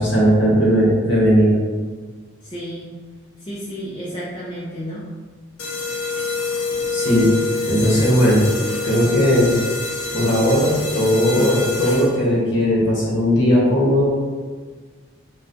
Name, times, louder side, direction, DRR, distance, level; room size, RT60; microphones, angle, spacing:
voice 1, 0.0-1.6 6.9-7.3 7.7-8.5 8.8-9.6 10.1-14.3, equal, 60° left, -5 dB, 1.1 m, -17 dB
voice 2, 2.4-2.9 3.4-5.0, equal, 25° left, -8 dB, 0.5 m, -31 dB
sound 1, 5.6-12.4, left 3 dB, 80° left, 0.5 m, -26 dB
4.0 x 2.2 x 2.5 m, 1.5 s
head